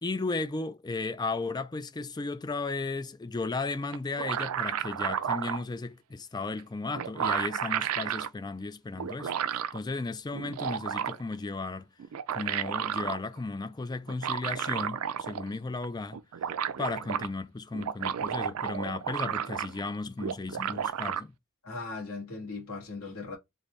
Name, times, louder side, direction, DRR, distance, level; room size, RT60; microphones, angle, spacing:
voice 1, 0.0-9.3 9.7-11.9 12.3-16.2 16.8-21.3, left 3 dB, 20° left, 0.4 m, -35 dB
sound 1, 3.9-5.6 6.6-6.7 6.9-8.3 9.0-9.8 10.3-11.3 12.0-13.2 14.1-15.5 15.8-15.9 16.1-17.3 17.7-19.9 20.2-21.2, right 9 dB, 85° right, 0.4 m, -32 dB
voice 2, 21.6-23.4, left 3 dB, 75° left, 1.7 m, -38 dB
3.9 x 2.7 x 3.2 m
head